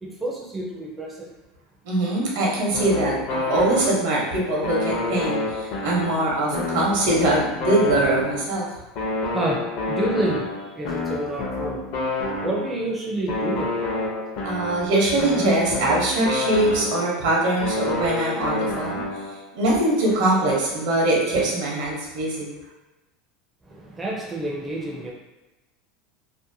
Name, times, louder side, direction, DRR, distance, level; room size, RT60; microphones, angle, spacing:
voice 1, 0.0-1.3 9.3-11.8 12.4-13.7 23.6-25.1, right 1 dB, 10° right, -3 dB, 0.4 m, -29 dB
voice 2, 1.9-8.7 14.4-19.0 19.5-22.5, right 2 dB, 75° right, -3 dB, 0.8 m, -22 dB
sound 1, 2.7-4.3 4.6-8.6 9.0-12.8 13.3-17.2 17.6-19.4, left 2 dB, 55° left, 0.5 m, -29 dB
2.6 x 2.1 x 2.6 m, 1.1 s
supercardioid pair, 145°, 0 cm